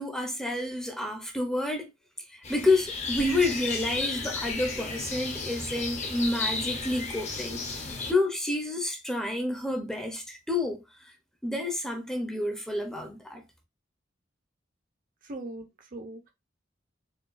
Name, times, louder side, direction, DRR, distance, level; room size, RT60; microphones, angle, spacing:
voice 1, 0.0-1.9 2.3-7.6 8.1-11.1 11.4-13.4, left 2 dB, 5° left, 0.7 m, -29 dB
sound 1, 2.4-8.1, left 3 dB, 35° left, 0.8 m, -34 dB
voice 2, 15.2-16.3, right 2 dB, 45° right, 0.7 m, -40 dB
4.5 x 2.4 x 2.4 m
head